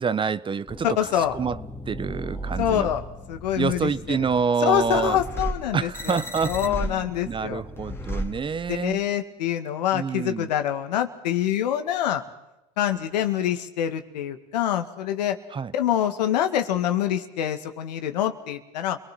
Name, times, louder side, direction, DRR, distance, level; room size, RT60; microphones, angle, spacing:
voice 1, 0.0-0.9 1.3-1.6 1.9-2.9 3.6-5.2 5.7-9.0 9.9-10.5 15.5-15.7, right 6 dB, 25° right, 0.8 m, -27 dB
sound 1, 0.7-9.0, equal, 10° left, 2.1 m, -35 dB
voice 2, 0.8-1.4 2.6-4.3 4.6-6.2 6.5-7.6 8.7-12.2 12.8-15.4 15.7-19.0, left 10 dB, 85° left, 2.1 m, -25 dB
29.0 x 20.5 x 6.0 m
hypercardioid pair, 90°, 21 cm